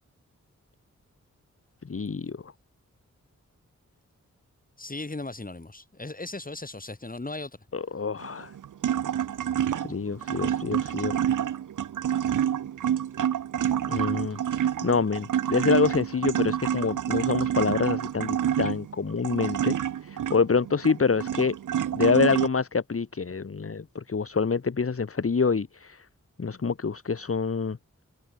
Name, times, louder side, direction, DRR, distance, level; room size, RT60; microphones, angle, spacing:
voice 1, 1.9-2.5 7.7-8.5 9.8-11.2 13.9-19.7 20.0-21.5 21.9-26.1 26.4-27.8, left 5 dB, 50° left, 1.5 m, -26 dB
voice 2, 4.8-7.5, left 2 dB, 30° left, 3.7 m, -37 dB
sound 1, 8.2-22.5, right 10 dB, 90° right, 0.6 m, -28 dB
wide cardioid pair, 80°, 30 cm